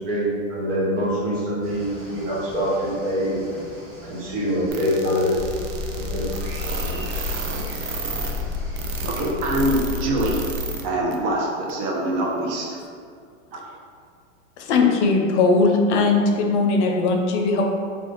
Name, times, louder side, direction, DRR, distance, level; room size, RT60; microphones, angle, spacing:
voice 1, 0.0-3.4 4.0-5.4 5.9-6.3 6.6-6.9, equal, 65° right, -7 dB, 1.5 m, -25 dB
sound 1, 1.6-9.3, right 1 dB, 25° right, 1.3 m, -41 dB
sound 2, 4.7-10.8 11.1-11.2 11.7-11.8, right 4 dB, 90° right, 0.6 m, -32 dB
sound 3, 5.3-10.6, left 3 dB, 5° left, 0.4 m, -31 dB
voice 2, 9.0-10.4 10.8-12.8, right 1 dB, 45° right, -2 dB, 0.8 m, -24 dB
voice 3, 14.6-17.7, left 3 dB, 60° left, 2 dB, 0.5 m, -19 dB
2.4 x 2.4 x 3.8 m, 2.2 s
hypercardioid pair, 125°, 40 cm